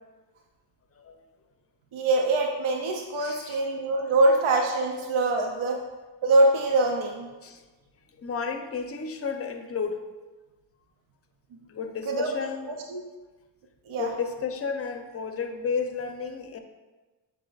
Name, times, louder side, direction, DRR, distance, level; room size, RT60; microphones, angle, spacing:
voice 1, 1.9-5.8 6.2-7.3 12.1-12.3 12.9-13.0 13.9-14.1, right 2 dB, 80° right, 2 dB, 0.6 m, -23 dB
voice 2, 3.2-3.6 7.4-7.6 8.2-10.0 11.7-12.8 14.0-16.6, left 5 dB, 30° left, 6 dB, 0.5 m, -32 dB
7.5 x 2.8 x 2.4 m, 1.2 s
cardioid pair, 55°, 47 cm